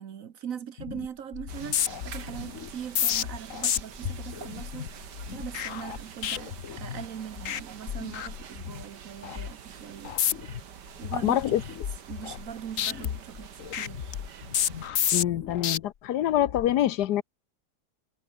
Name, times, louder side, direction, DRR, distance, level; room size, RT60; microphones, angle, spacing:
voice 1, 0.0-10.2 11.0-11.6 12.1-14.2, right 8 dB, 55° right, 1.3 m, -41 dB
sound 1, 0.8-1.1 1.3-7.1 7.4-7.6 7.9-8.8 9.2-9.5 10.0-10.6 11.0-12.5 12.8-15.8 16.3-16.7, left 9 dB, 55° left, 1.2 m, -31 dB
sound 2, 1.5-14.9, right 8 dB, 75° right, 2.1 m, -46 dB
voice 2, 11.1-11.6 15.1-17.2, left 12 dB, 75° left, 1.3 m, -25 dB
omnidirectional pair, 1.8 m